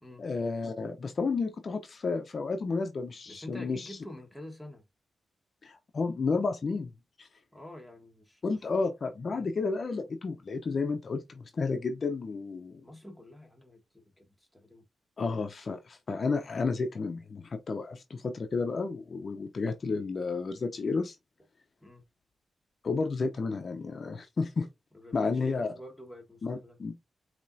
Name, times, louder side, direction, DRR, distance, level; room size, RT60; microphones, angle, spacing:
voice 1, 0.2-4.0 5.6-6.9 7.2-7.3 8.4-12.8 15.2-21.2 22.8-24.7 25.1-25.7 26.4-26.9, left 4 dB, 55° left, 0.7 m, -31 dB
voice 2, 3.3-4.8 7.5-8.6 9.3-9.4 12.8-14.8 21.8-22.0 24.9-26.8, left 1 dB, 5° left, 1.5 m, -48 dB
5.4 x 3.0 x 2.7 m
supercardioid pair, 45°, 0 cm